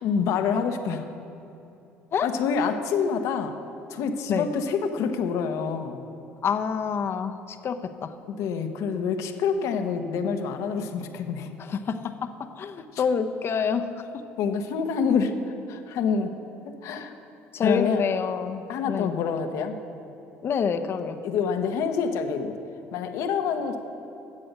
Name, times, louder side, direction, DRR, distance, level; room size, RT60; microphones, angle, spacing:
voice 1, 0.0-1.0 2.2-3.5 3.9-6.0 8.3-11.5 12.9-13.0 14.4-15.3 15.7-16.3 16.8-17.1 17.6-18.0 18.7-19.8 21.2-22.5 22.9-23.8, left 6 dB, 70° left, 6 dB, 1.1 m, -27 dB
voice 2, 6.4-7.3 7.6-8.1 11.7-12.0 12.6-13.8 17.5-19.1 20.4-21.2, left 6 dB, 45° left, 7 dB, 0.9 m, -27 dB
12.5 x 7.7 x 6.6 m, 2.8 s
supercardioid pair, 80°, 5 cm